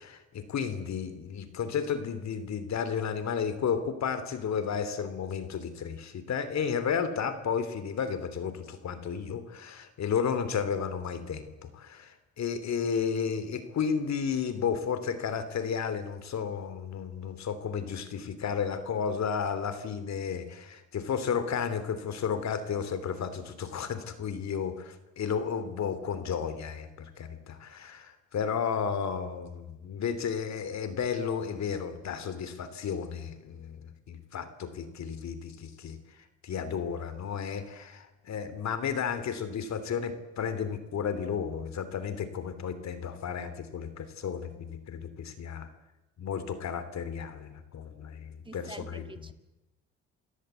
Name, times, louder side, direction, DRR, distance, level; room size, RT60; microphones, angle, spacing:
voice 1, 0.0-36.0 36.4-45.7 46.2-49.3, left 7 dB, 65° left, 12 dB, 3.2 m, -33 dB
voice 2, 48.4-49.3, right 2 dB, 15° right, 9 dB, 1.7 m, -46 dB
28.5 x 17.5 x 8.3 m, 1.0 s
cardioid pair, 90°, 30 cm